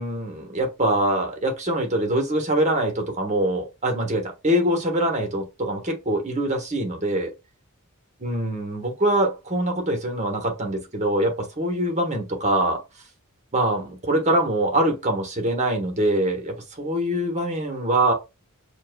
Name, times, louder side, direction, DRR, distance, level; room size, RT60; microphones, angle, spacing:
voice 1, 0.0-7.3 8.2-12.8 13.5-18.1, right 1 dB, 30° right, 1.2 m, -24 dB
7.3 x 2.4 x 2.2 m
head